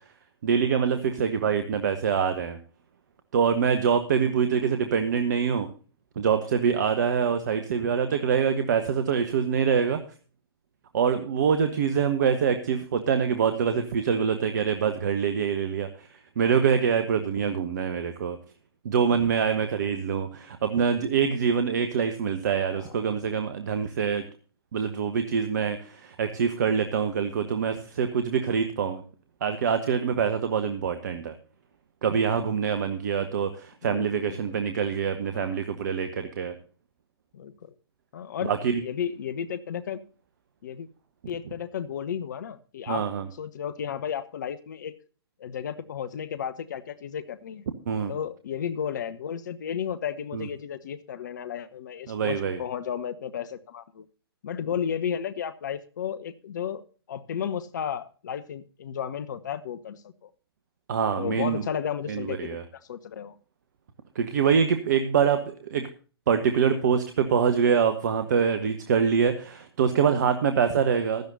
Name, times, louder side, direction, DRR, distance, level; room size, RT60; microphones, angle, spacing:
voice 1, 0.4-2.6 3.3-5.7 6.2-10.0 10.9-16.1 16.4-18.4 18.8-24.2 24.7-29.0 29.4-31.3 32.0-36.5 38.4-38.8 42.9-43.3 47.9-48.1 50.3-50.5 52.1-52.6 60.9-61.6 62.1-62.6 64.1-65.9 66.3-71.3, right 7 dB, 45° right, 8 dB, 1.2 m, -25 dB
voice 2, 33.8-34.4 35.3-35.6 37.3-37.5 38.1-38.5 38.8-40.0 40.6-40.9 41.3-43.1 43.4-44.9 45.4-47.6 48.1-54.1 54.4-56.8 57.1-60.3 61.2-63.3, left 8 dB, 50° left, 15 dB, 0.9 m, -33 dB
16.0 x 12.5 x 2.7 m, 0.38 s
figure-of-eight pair, 125°, 13 cm